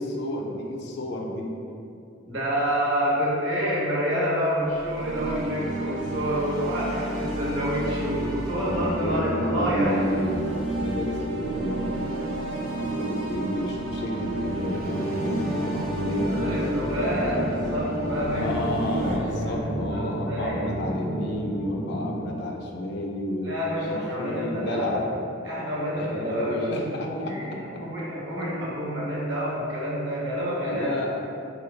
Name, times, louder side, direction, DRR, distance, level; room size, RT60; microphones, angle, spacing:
voice 1, 0.0-1.6 8.6-12.2 12.5-16.4 18.3-23.6 23.8-25.0 25.9-27.4 30.6-31.2, left 1 dB, 60° left, 0 dB, 0.4 m, -31 dB
voice 2, 2.3-10.0 16.2-18.5 18.9-20.7 23.4-25.0 25.4-30.9, equal, 65° right, -6 dB, 0.8 m, -28 dB
sound 1, 4.6-19.2, right 1 dB, 85° right, 0.4 m, -31 dB
sound 2, 14.8-22.4, right 1 dB, 10° right, 0.3 m, -32 dB
3.2 x 2.2 x 3.1 m, 2.6 s
head